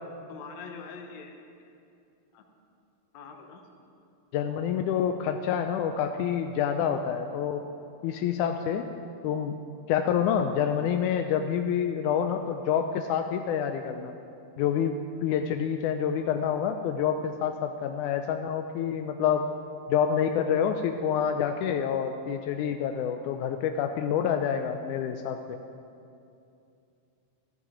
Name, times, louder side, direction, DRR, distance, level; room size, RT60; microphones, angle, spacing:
voice 1, 0.3-1.4 2.3-2.4 3.1-3.6 6.8-7.0 12.1-12.2, left 5 dB, 65° left, 4 dB, 2.0 m, -44 dB
voice 2, 4.3-7.6 8.0-8.9 9.2-9.6 9.9-14.1 14.6-19.5 19.9-25.6, left 8 dB, 85° left, 6 dB, 1.8 m, -27 dB
14.0 x 13.5 x 5.0 m, 2.6 s
omnidirectional pair, 4.1 m